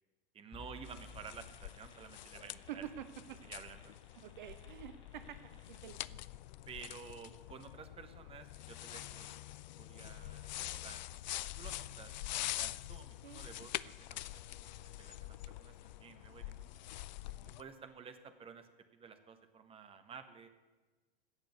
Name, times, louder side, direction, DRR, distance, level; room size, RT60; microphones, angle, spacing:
voice 1, 0.3-2.9 3.4-4.0 6.7-11.0 11.6-14.3 14.6-16.6 17.6-20.5, right 6 dB, 20° right, 9 dB, 1.3 m, -52 dB
sound 1, 0.5-6.0, left 3 dB, 15° left, 2.3 m, -58 dB
sound 2, 0.8-17.6, left 14 dB, 50° left, 0.4 m, -45 dB
voice 2, 2.7-3.4 4.1-6.2 13.2-13.5, right 10 dB, 55° right, 11 dB, 0.8 m, -48 dB
16.0 x 6.7 x 9.6 m, 1.3 s
figure-of-eight pair, 90°, 29 cm